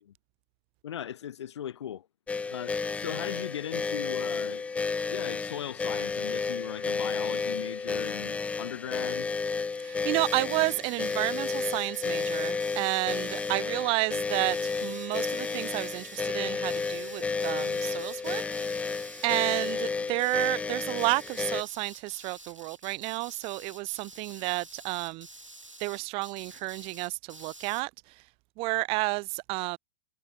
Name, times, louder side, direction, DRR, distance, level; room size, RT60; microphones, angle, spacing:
voice 1, 0.8-2.1 2.5-4.6 5.1-9.3, left 10 dB, 60° left, 5.7 m, -38 dB
sound 1, 2.3-21.6, left 4 dB, 10° left, 0.5 m, -32 dB
voice 2, 9.8-18.4 19.2-25.3 25.8-27.9 28.6-29.8, right 27 dB, 35° right, 1.1 m, -31 dB
sound 2, 10.1-13.6 14.2-16.2 16.6-19.8 20.1-20.5 20.8-27.8, right 2 dB, 85° right, 6.4 m, -49 dB
figure-of-eight pair, 100°, 16 cm